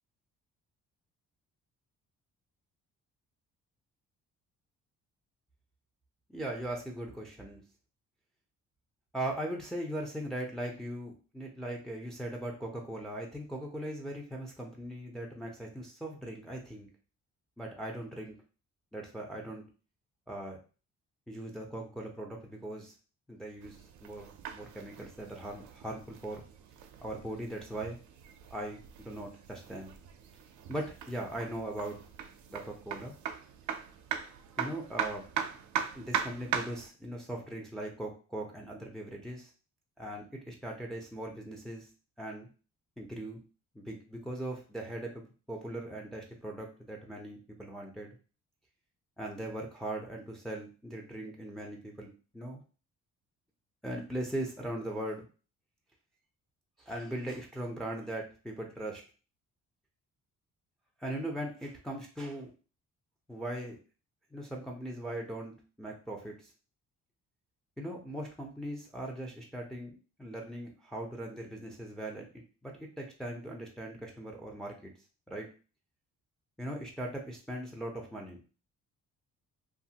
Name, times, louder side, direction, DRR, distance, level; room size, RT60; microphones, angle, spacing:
voice 1, 6.3-7.6 9.1-16.9 17.6-18.4 18.9-19.6 20.3-20.6 21.3-22.9 23.3-26.4 27.0-28.0 28.5-29.9 30.7-32.0 32.5-33.1 34.6-35.3 35.9-39.5 40.0-41.9 42.2-42.5 43.0-43.4 43.7-45.1 45.5-48.1 49.2-52.1 52.3-52.6 53.8-55.2 56.8-59.0 61.0-62.5 63.3-63.8 64.3-66.5 67.8-74.9 75.3-75.5 76.6-78.4, right 1 dB, ahead, 0 dB, 0.6 m, -39 dB
sound 1, 23.6-36.9, right 8 dB, 75° right, 0.5 m, -40 dB
2.6 x 2.4 x 2.8 m, 0.35 s
cardioid pair, 90°, 30 cm